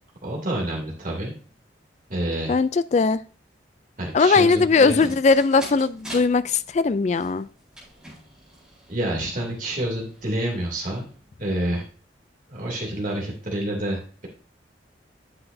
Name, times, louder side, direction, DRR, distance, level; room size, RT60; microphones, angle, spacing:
voice 1, 0.2-1.3 2.1-2.5 4.0-5.1 8.9-11.1 11.4-11.8 12.5-14.3, right 1 dB, 45° right, -2 dB, 2.7 m, -28 dB
voice 2, 2.5-3.2 4.1-7.5, left 4 dB, 35° left, 15 dB, 0.3 m, -19 dB
sound 1, 4.8-11.9, right 1 dB, 5° right, 4.9 m, -45 dB
9.8 x 7.8 x 2.7 m, 0.39 s
head